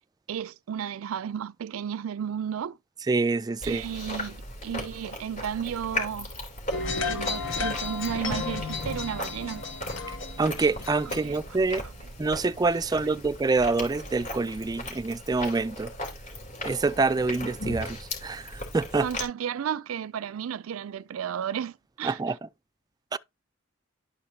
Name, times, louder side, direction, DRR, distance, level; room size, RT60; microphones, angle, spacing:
voice 1, 0.3-2.8 3.6-6.3 7.0-9.6 11.2-11.4 19.0-22.2, right 8 dB, 90° right, 0.4 m, -33 dB
voice 2, 3.1-3.8 10.4-11.8 12.2-15.9 16.6-19.1 22.0-22.4 23.1-23.2, right 3 dB, 20° right, 0.4 m, -26 dB
Chewing mastication, 3.6-19.2, left 1 dB, 40° left, 3.6 m, -37 dB
sound 1, 6.7-11.8, left 4 dB, 65° left, 1.4 m, -33 dB
12.0 x 4.9 x 2.8 m
head